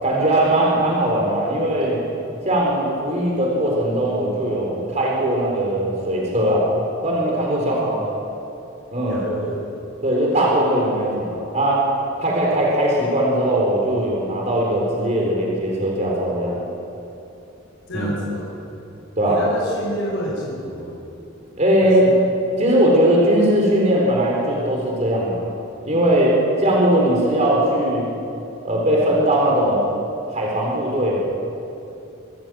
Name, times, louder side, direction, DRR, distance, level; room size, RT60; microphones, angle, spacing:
voice 1, 0.0-2.0 2.4-6.7 7.0-8.2 8.9-9.2 10.0-11.9 12.2-16.6 17.9-18.1 19.2-19.4 21.6-22.1 22.6-25.4 25.8-28.1 28.6-29.9 30.3-31.2, right 1 dB, 35° right, -2 dB, 4.1 m, -19 dB
voice 2, 7.6-8.0 9.0-9.7 17.9-18.7 19.2-21.0 21.8-22.2, equal, 70° left, -3 dB, 5.2 m, -30 dB
26.0 x 14.5 x 7.6 m, 2.8 s
head